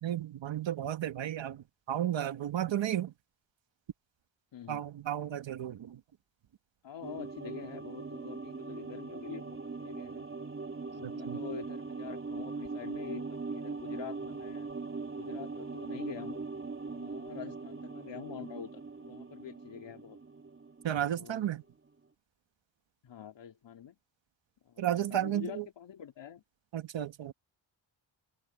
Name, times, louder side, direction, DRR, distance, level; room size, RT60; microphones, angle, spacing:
voice 1, 0.0-3.1 4.7-6.0 11.0-11.4 20.8-21.6 24.8-25.7 26.7-27.3, right 11 dB, 70° right, 1.7 m, -33 dB
voice 2, 4.5-4.8 6.8-10.3 10.9-14.7 15.1-16.5 16.9-20.2 21.1-21.6 23.0-24.0 24.6-26.4, left 9 dB, 70° left, 3.1 m, -46 dB
sound 1, 7.0-21.6 21.8-21.9, right 4 dB, 25° right, 3.5 m, -41 dB
open air
cardioid pair, 100°, 46 cm